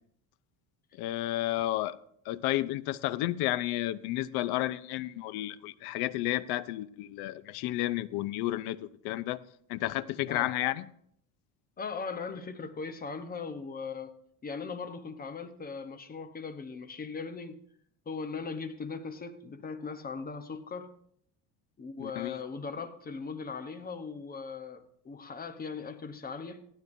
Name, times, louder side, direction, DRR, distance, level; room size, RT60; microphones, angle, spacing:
voice 1, 0.9-2.0 2.3-9.4 9.7-10.9 22.0-22.4, left 15 dB, 70° left, 0.7 m, -32 dB
voice 2, 11.8-14.2 14.4-17.6 18.1-20.9 21.8-26.7, left 5 dB, 20° left, 0.9 m, -39 dB
16.0 x 12.5 x 2.6 m
cardioid pair, 135°, 40 cm